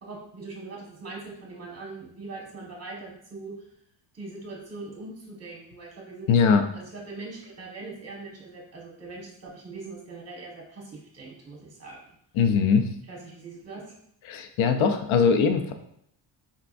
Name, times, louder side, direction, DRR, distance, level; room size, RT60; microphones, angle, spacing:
voice 1, 0.0-3.5 4.1-6.3 6.7-12.0 13.1-13.8, right 3 dB, 30° right, -3 dB, 1.4 m, -41 dB
voice 2, 6.3-6.6 12.4-12.9 14.3-15.7, left 6 dB, 75° left, 7 dB, 0.6 m, -21 dB
4.3 x 3.4 x 2.5 m, 0.71 s
cardioid pair, 100°, 48 cm